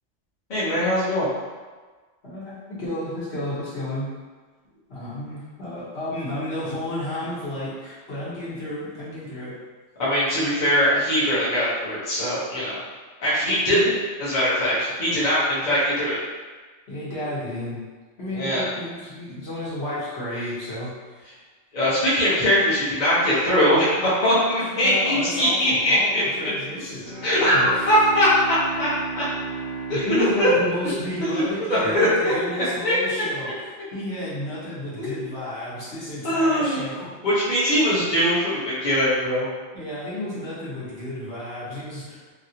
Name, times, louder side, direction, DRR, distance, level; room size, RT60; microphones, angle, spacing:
voice 1, 0.5-1.3 10.0-12.8 13.2-13.9 14.2-16.2 18.3-18.7 21.7-26.5 27.2-28.9 29.1-29.2 29.9-30.5 30.8-30.9 31.2-33.0 35.0-35.1 36.2-36.8 37.2-39.5, equal, 40° left, -10 dB, 1.0 m, -21 dB
voice 2, 2.2-4.1 4.9-9.5 13.7-13.9 16.9-17.8 18.2-21.3 24.8-27.7 29.9-37.1 39.7-42.2, left 1 dB, 60° left, -10 dB, 1.3 m, -32 dB
Bowed string instrument, 26.9-31.8, right 4 dB, 70° right, 0.8 m, -35 dB
2.9 x 2.7 x 2.7 m, 1.4 s
omnidirectional pair, 1.3 m